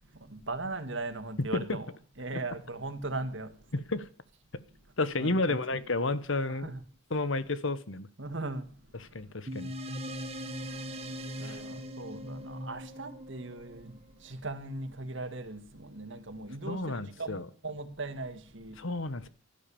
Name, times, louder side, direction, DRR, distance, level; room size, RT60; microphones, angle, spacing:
voice 1, 0.2-1.9 2.2-3.5 5.2-5.6 6.5-6.8 8.2-9.1 11.4-18.8, right 2 dB, 60° right, 2.0 m, -39 dB
voice 2, 1.4-1.8 3.7-4.1 5.0-6.7 7.1-8.1 9.0-9.7 11.4-11.6 16.7-17.5 18.8-19.3, left 2 dB, 65° left, 1.2 m, -31 dB
sound 1, 9.5-14.3, equal, 30° right, 1.7 m, -40 dB
15.0 x 12.5 x 7.2 m
head